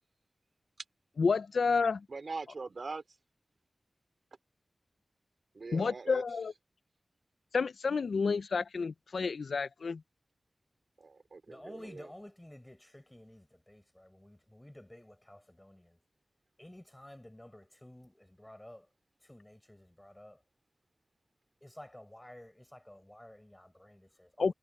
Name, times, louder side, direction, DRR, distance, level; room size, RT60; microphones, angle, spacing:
voice 1, 1.2-2.1 5.7-6.5 7.5-10.0 24.4-24.5, left 4 dB, 85° left, 0.4 m, -30 dB
voice 2, 2.1-3.0 5.5-6.2 11.0-12.1, right 4 dB, 60° right, 4.5 m, -42 dB
voice 3, 11.5-16.0 16.6-18.9 19.2-20.4 21.6-24.5, left 1 dB, 10° left, 5.5 m, -52 dB
wide cardioid pair, 85°, 0 cm